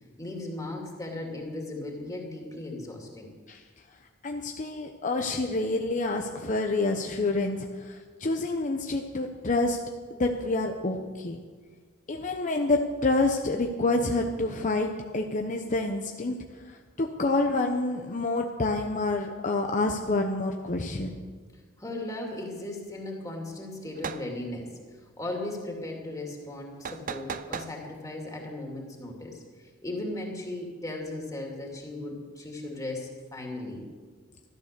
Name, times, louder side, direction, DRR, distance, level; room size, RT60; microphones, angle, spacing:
voice 1, 0.2-3.3 21.8-33.8, left 1 dB, 15° left, 0 dB, 2.5 m, -37 dB
voice 2, 4.2-9.8 10.1-11.4 12.1-16.3 16.7-21.3, left 2 dB, 40° left, 3 dB, 0.8 m, -28 dB
sound 1, 24.0-24.3 26.9-27.7, right 6 dB, 40° right, 0.6 m, -36 dB
13.5 x 12.0 x 6.8 m, 1.5 s
head